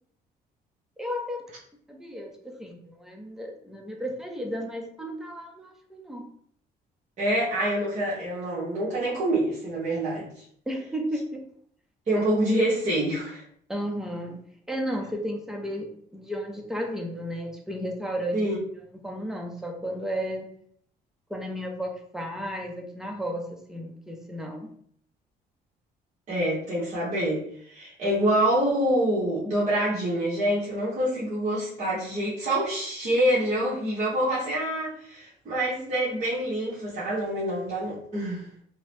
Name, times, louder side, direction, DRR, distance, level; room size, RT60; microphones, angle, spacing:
voice 1, 1.0-1.4 1.9-6.3 10.7-11.5 13.7-20.5 21.3-24.7, equal, 5° right, 2 dB, 0.5 m, -34 dB
voice 2, 7.2-10.3 12.1-13.4 18.3-18.6 26.3-38.4, right 1 dB, 45° right, -8 dB, 1.0 m, -26 dB
2.8 x 2.0 x 3.0 m, 0.62 s
cardioid pair, 110°, 17 cm